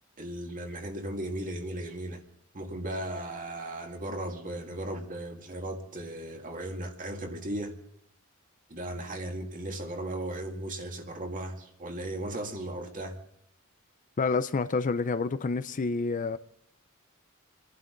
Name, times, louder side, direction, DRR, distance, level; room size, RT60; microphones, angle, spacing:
voice 1, 0.2-2.2 2.5-7.8 8.7-13.2, right 1 dB, 40° right, 2.1 m, -36 dB
voice 2, 14.2-16.4, left 4 dB, 35° left, 0.5 m, -28 dB
28.0 x 11.0 x 3.9 m
head